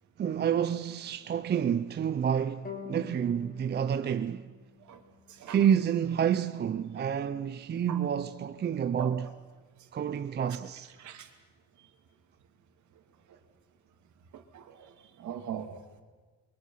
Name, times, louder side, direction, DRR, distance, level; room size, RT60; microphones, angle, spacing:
voice 1, 0.2-4.5 5.5-9.3 9.9-10.9, right 8 dB, 35° right, 0.6 m, -29 dB
sound 1, 2.6-5.9, left 6 dB, 30° left, 3.4 m, -47 dB
voice 2, 11.0-11.3 11.8-11.9 14.3-15.7, right 9 dB, 70° right, 2.6 m, -41 dB
28.0 x 23.0 x 5.7 m
cardioid pair, 150°, 30 cm